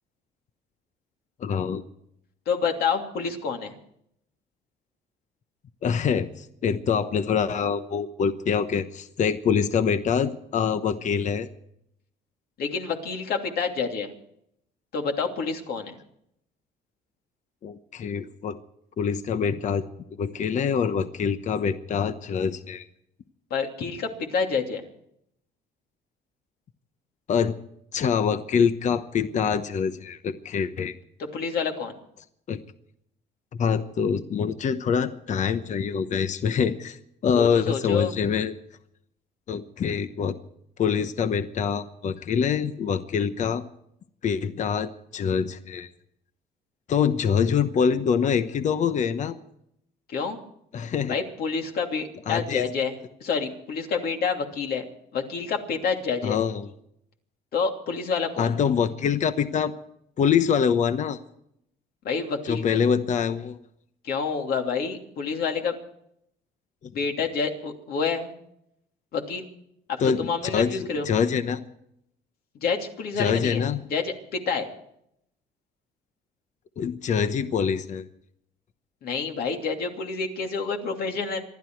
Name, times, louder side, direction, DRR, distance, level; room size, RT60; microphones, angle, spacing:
voice 1, 1.4-1.8 5.8-11.5 17.6-18.6 19.0-19.9 20.2-22.9 27.3-27.6 27.9-30.9 32.5-32.6 33.6-37.0 37.2-38.5 39.5-40.4 40.8-43.6 44.2-45.9 46.9-49.4 50.7-51.1 52.3-52.7 56.2-56.7 58.4-59.7 60.2-61.2 62.5-63.6 66.8-66.9 70.0-70.8 71.1-71.6 73.2-73.8 76.8-78.0, left 7 dB, 45° left, 11 dB, 1.0 m, -25 dB
voice 2, 2.5-3.7 12.6-14.1 14.9-16.0 23.5-24.8 31.2-31.9 37.3-38.2 50.1-50.4 51.1-54.8 55.1-56.4 57.5-58.5 62.0-62.8 64.0-65.7 66.9-68.3 69.1-69.5 69.9-71.1 72.6-73.6 73.9-74.7 79.0-81.4, left 5 dB, 65° left, 3 dB, 2.8 m, -28 dB
27.0 x 11.5 x 4.6 m, 0.74 s
cardioid pair, 110°, 17 cm